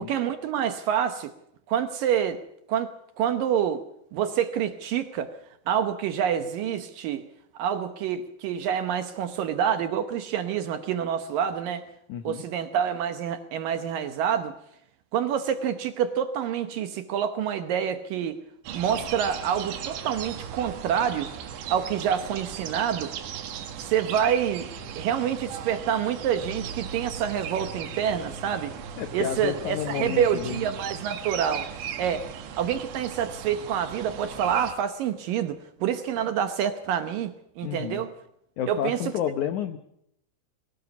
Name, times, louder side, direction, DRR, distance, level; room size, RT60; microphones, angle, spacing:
voice 1, 0.0-1.3 1.7-2.4 2.7-3.8 4.1-5.3 5.7-7.3 7.5-11.8 12.2-14.5 15.1-18.4 18.7-21.3 21.7-23.1 23.8-24.7 25.0-28.7 29.1-31.7 32.0-32.3 32.6-38.1 38.7-39.0, right 9 dB, 70° right, 9 dB, 2.3 m, -27 dB
voice 2, 12.1-12.4 29.0-30.6 37.6-38.0 38.6-39.8, left 9 dB, 80° left, 9 dB, 1.7 m, -30 dB
sound 1, 18.7-34.8, right 8 dB, 90° right, 3.8 m, -38 dB
sound 2, 24.8-31.0, right 2 dB, 65° left, 4.7 m, -44 dB
22.0 x 18.0 x 7.2 m, 0.74 s
omnidirectional pair, 4.8 m